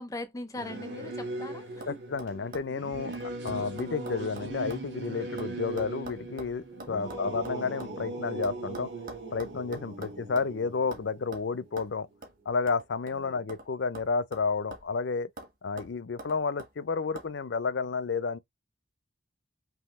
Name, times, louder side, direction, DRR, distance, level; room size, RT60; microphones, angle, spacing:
voice 1, 0.0-2.0 6.8-7.4 9.9-10.2 13.3-13.4, left 2 dB, 20° left, 0.5 m, -41 dB
Singing / Musical instrument, 0.5-12.4, right 2 dB, 70° right, 2.0 m, -39 dB
sound 1, 1.2-1.4 1.8-1.9 2.2-4.9 5.1-8.0 8.4-10.6 10.9-11.1 11.3-11.5 11.8-11.9 12.2-12.4 12.7-13.7 14.0-15.0 15.4-15.5 15.8-16.7 17.2-17.3, right 1 dB, 45° right, 1.4 m, -45 dB
voice 2, 1.9-3.1 3.4-8.9 9.3-12.1 12.5-15.3 15.6-18.4, left 4 dB, 70° left, 0.5 m, -31 dB
5.5 x 2.7 x 3.1 m
head